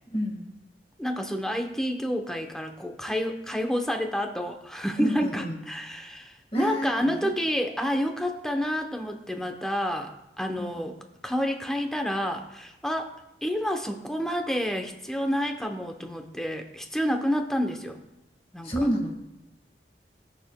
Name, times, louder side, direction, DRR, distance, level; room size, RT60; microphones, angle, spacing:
voice 1, 0.1-0.5 5.0-5.6 6.5-7.3 10.6-10.9 18.6-19.1, equal, 35° left, 1 dB, 1.7 m, -29 dB
voice 2, 1.0-10.1 10.4-11.0 11.2-13.1 13.4-18.0 18.5-18.7, equal, 5° left, 4 dB, 0.7 m, -29 dB
20.0 x 6.8 x 2.2 m, 0.91 s
head